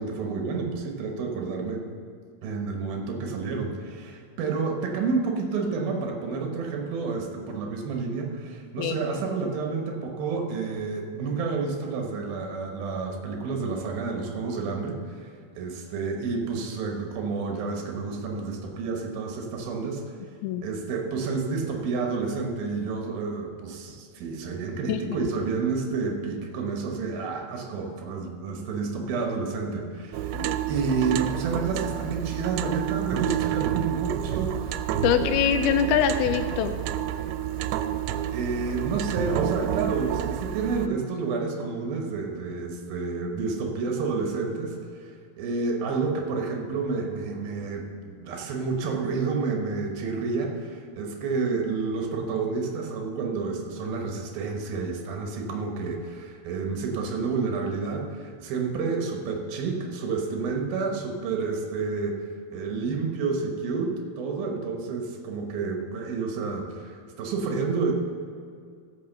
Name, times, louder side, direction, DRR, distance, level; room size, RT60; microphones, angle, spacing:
voice 1, 0.0-1.9 2.4-15.3 15.6-20.0 20.6-30.3 30.7-34.8 38.3-62.2 62.5-67.9, right 4 dB, 70° right, 2 dB, 2.9 m, -30 dB
sound 1, 30.1-40.9, right 11 dB, 90° right, 2.6 m, -29 dB
voice 2, 35.0-36.7, left 9 dB, 80° left, 9 dB, 2.4 m, -24 dB
15.0 x 6.0 x 6.6 m, 2.2 s
omnidirectional pair, 4.6 m